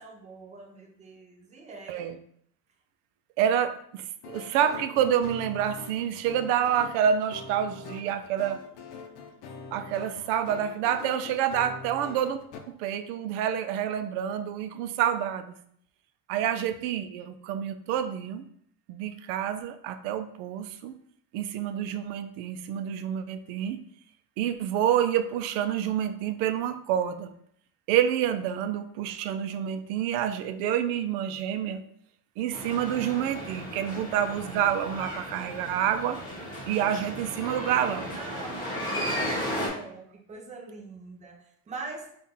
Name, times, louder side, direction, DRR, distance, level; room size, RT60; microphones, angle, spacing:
voice 1, 0.0-2.0 38.1-41.4 41.7-42.1, right 3 dB, 15° right, 2 dB, 0.5 m, -43 dB
voice 2, 3.4-8.6 9.7-12.4 12.7-15.5 16.3-18.5 18.9-21.0 21.3-23.8 24.4-27.3 27.9-31.8 32.4-36.2 36.7-38.2, right 9 dB, 80° right, 10 dB, 0.6 m, -28 dB
sound 1, 4.2-12.6, left 4 dB, 60° left, 0.6 m, -44 dB
sound 2, 32.5-39.7, equal, 10° left, 1.1 m, -35 dB
3.7 x 2.5 x 4.1 m, 0.66 s
cardioid pair, 155°, 42 cm